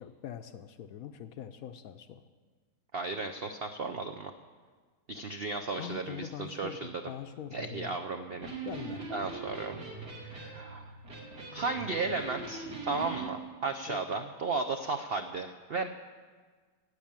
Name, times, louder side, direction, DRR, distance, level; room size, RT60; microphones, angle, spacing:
voice 1, 0.0-2.2 5.8-8.0 8.6-9.3 13.9-14.2, left 9 dB, 70° left, 9 dB, 0.9 m, -43 dB
voice 2, 2.9-4.3 5.1-6.9 7.5-8.5 9.1-9.8 10.2-10.9 11.5-15.9, right 4 dB, 90° right, 6 dB, 0.5 m, -34 dB
Electric guitar, 8.4-13.3, right 3 dB, 70° right, 3.1 m, -41 dB
13.0 x 8.4 x 8.8 m, 1.5 s
omnidirectional pair, 1.9 m